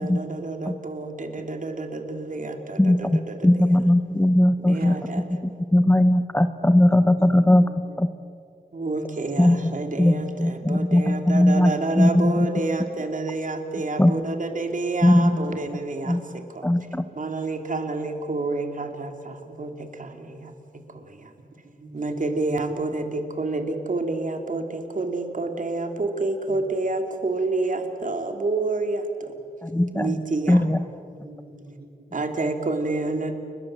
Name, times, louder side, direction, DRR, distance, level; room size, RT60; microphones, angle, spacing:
voice 1, 0.0-3.7 4.6-5.3 8.7-16.7 17.1-21.3 21.9-29.4 29.9-30.7 32.1-33.3, right 3 dB, 55° right, 5 dB, 2.8 m, -29 dB
voice 2, 2.8-5.0 5.7-7.6 8.0-8.1 9.4-9.7 10.0-12.5 14.0-14.1 15.0-15.6 16.1-16.2 16.6-17.1 29.6-30.2 30.5-30.8, left 1 dB, 10° left, 11 dB, 1.0 m, -19 dB
voice 3, 7.2-8.0 21.7-22.6 30.9-31.9, right 1 dB, 75° right, 2 dB, 4.3 m, -44 dB
29.5 x 22.0 x 7.6 m, 2.4 s
wide cardioid pair, 100°, 16 cm